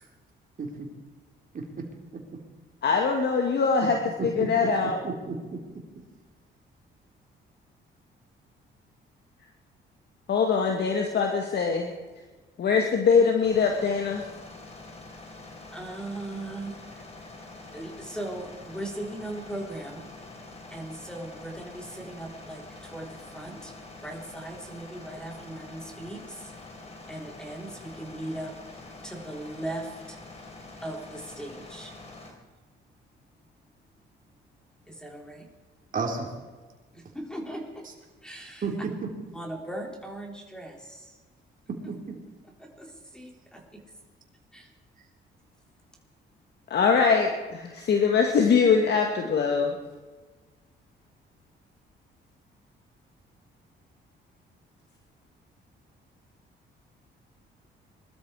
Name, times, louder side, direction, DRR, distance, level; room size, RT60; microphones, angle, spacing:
voice 1, 2.8-5.0 10.3-11.9 12.6-14.2 46.7-49.8, left 5 dB, 60° left, 3 dB, 1.9 m, -23 dB
voice 2, 5.0-5.6 35.9-36.3 38.6-38.9 41.9-42.2, right 4 dB, 45° right, 1 dB, 3.8 m, -32 dB
sound 1, 13.4-32.3, left 2 dB, 30° left, 3.6 m, -46 dB
voice 3, 15.7-17.1 17.7-20.1 20.7-23.7 24.0-26.5 27.1-30.2 30.8-32.0 34.9-35.5 36.9-37.9 38.2-38.7 39.3-41.2 42.6-43.8 44.5-44.7, right 1 dB, 5° left, 2 dB, 3.5 m, -39 dB
21.0 x 13.0 x 4.8 m, 1.3 s
cardioid pair, 90°, 20 cm